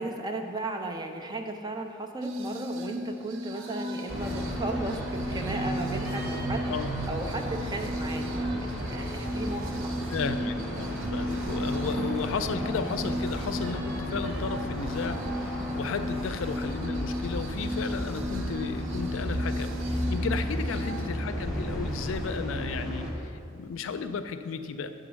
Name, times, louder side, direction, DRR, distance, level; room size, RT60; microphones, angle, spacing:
voice 1, 0.0-6.7 7.1-8.6 8.9-9.7 20.4-20.6, right 2 dB, 20° right, 3 dB, 0.5 m, -35 dB
sound 1, 2.2-21.1, equal, 80° right, 0.5 m, -35 dB
sound 2, 2.7-3.0 3.3-12.4 13.0-14.4, right 2 dB, 60° right, 1.0 m, -47 dB
sound 3, 4.1-23.1, equal, ahead, 1.2 m, -34 dB
voice 2, 10.1-24.9, left 5 dB, 85° left, 10 dB, 0.4 m, -34 dB
7.9 x 3.9 x 6.3 m, 2.4 s
head